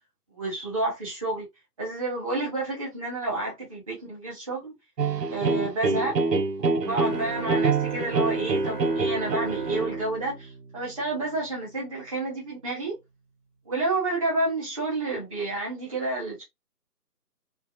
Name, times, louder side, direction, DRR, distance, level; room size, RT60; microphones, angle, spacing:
voice 1, 0.3-1.5 1.8-4.7 5.3-6.2 6.6-13.0 13.6-16.4, right 2 dB, 20° right, 1.0 m, -30 dB
sound 1, 5.0-10.0, right 4 dB, 90° right, 0.7 m, -26 dB
sound 2, 6.8-11.5, right 5 dB, 70° right, 1.5 m, -36 dB
3.4 x 2.3 x 2.6 m
figure-of-eight pair, 155°, 48 cm